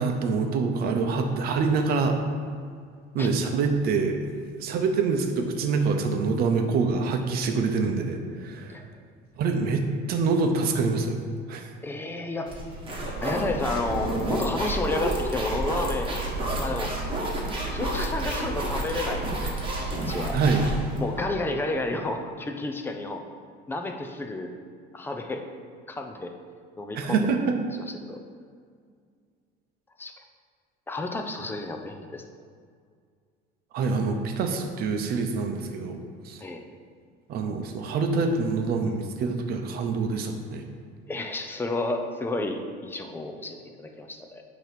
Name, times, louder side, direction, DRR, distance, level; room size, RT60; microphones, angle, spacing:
voice 1, 0.0-2.2 3.1-4.3 4.6-8.8 9.4-11.2 11.5-11.7 20.3-20.6 26.9-27.6 33.7-36.0 36.2-36.4 37.3-40.6, right 4 dB, 50° right, 5 dB, 0.8 m, -25 dB
voice 2, 11.8-12.5 13.2-16.2 16.6-16.9 17.7-19.7 20.1-20.4 21.0-23.2 23.7-24.5 24.9-25.4 25.9-26.3 26.8-27.2 27.9-28.2 30.0-30.1 30.9-32.2 36.4-36.6 41.1-44.4, left 2 dB, 10° left, 4 dB, 0.4 m, -31 dB
sound 1, 12.5-21.3, right 1 dB, 25° right, 1.2 m, -30 dB
9.0 x 3.0 x 5.8 m, 2.1 s
cardioid pair, 160°, 21 cm